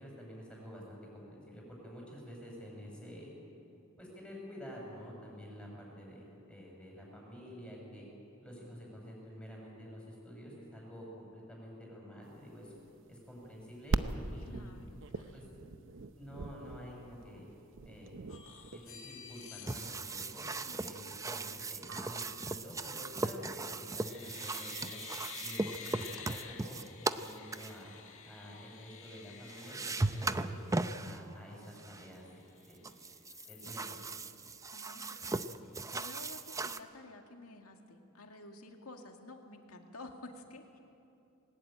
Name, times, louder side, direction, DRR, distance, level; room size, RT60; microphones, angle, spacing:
voice 1, 0.0-3.3 4.0-8.1 8.4-12.7 13.1-14.7 15.3-15.6 16.2-17.5 17.8-18.1 18.7-20.5 20.8-25.0 25.4-27.9 28.2-30.6 31.0-33.0 33.5-34.0, equal, 5° left, -2 dB, 6.1 m, -49 dB
sound 1, 12.4-23.5, right 3 dB, 60° right, 0.8 m, -41 dB
voice 2, 14.4-15.4 20.7-21.2 34.7-40.8, left 2 dB, 90° left, 4 dB, 2.1 m, -52 dB
sound 2, 18.3-21.3 23.1-23.5 23.9-31.1 31.6-31.7 31.9-32.8 33.2-33.7, left 7 dB, 65° left, 1.9 m, -51 dB
sound 3, 19.7-27.7 29.1-29.2 29.5-31.2 31.8-32.1 32.8-36.8, right 2 dB, 15° right, 0.5 m, -38 dB
21.0 x 19.0 x 8.8 m, 2.7 s
head